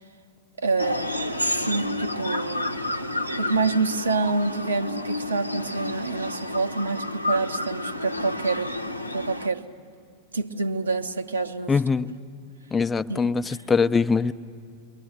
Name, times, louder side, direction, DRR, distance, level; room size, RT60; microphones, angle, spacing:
voice 1, 0.6-2.8 3.3-8.8 9.1-9.7 10.3-11.8 13.1-13.6, right 3 dB, 75° right, 0.9 m, -27 dB
sound 1, 0.8-9.5, left 1 dB, 90° left, 0.7 m, -30 dB
voice 2, 11.7-12.1 12.7-14.3, left 5 dB, 15° left, 0.5 m, -22 dB
29.0 x 23.0 x 7.9 m
figure-of-eight pair, 90°, 0 cm